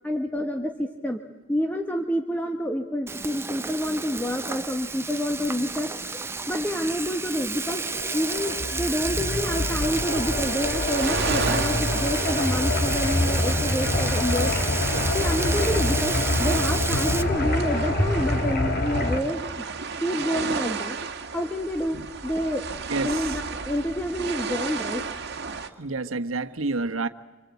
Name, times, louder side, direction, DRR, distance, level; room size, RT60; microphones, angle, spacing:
voice 1, 0.0-1.2 1.5-7.8 8.1-14.5 15.1-19.4 20.0-21.0 21.3-22.7 23.0-25.0, equal, 10° left, 1.4 m, -28 dB
Frying (food), 3.1-17.2, right 4 dB, 10° right, 0.8 m, -31 dB
sound 1, 7.6-19.2, left 2 dB, 50° left, 3.5 m, -26 dB
sound 2, 10.3-25.7, right 4 dB, 55° right, 2.0 m, -34 dB
voice 2, 22.9-23.4 25.6-27.1, right 3 dB, 85° right, 1.4 m, -29 dB
27.5 x 26.0 x 8.3 m
head